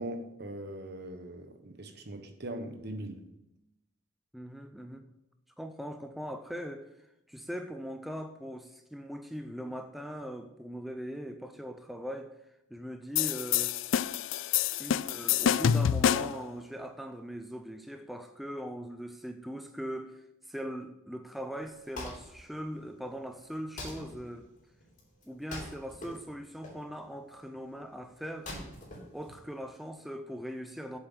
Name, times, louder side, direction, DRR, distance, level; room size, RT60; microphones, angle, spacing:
voice 1, 0.0-3.2, right 1 dB, 55° right, 1.2 m, -40 dB
voice 2, 4.3-5.1 5.6-12.3 12.7-13.8 14.8-24.5 25.3-28.5 29.1-31.0, equal, ahead, 0.5 m, -40 dB
sound 1, 13.2-16.5, left 9 dB, 65° left, 0.3 m, -27 dB
Wood, 21.5-29.9, left 1 dB, 40° left, 3.4 m, -46 dB
7.8 x 7.4 x 6.8 m
head